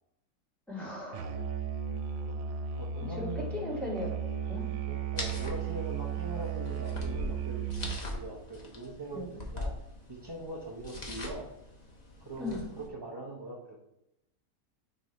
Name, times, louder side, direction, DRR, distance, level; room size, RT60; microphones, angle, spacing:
voice 1, 0.7-1.3 3.1-4.1 4.5-4.7 9.1-9.3 12.4-12.7, left 1 dB, ahead, -7 dB, 2.1 m, -37 dB
Musical instrument, 1.1-8.2, right 7 dB, 65° right, 0.7 m, -35 dB
voice 2, 2.8-3.5 4.9-9.7 10.1-11.5 12.2-13.9, right 2 dB, 35° right, -2 dB, 0.4 m, -42 dB
sound 1, 5.2-12.9, left 2 dB, 35° left, 0.9 m, -42 dB
6.4 x 3.4 x 4.3 m, 0.84 s
omnidirectional pair, 1.6 m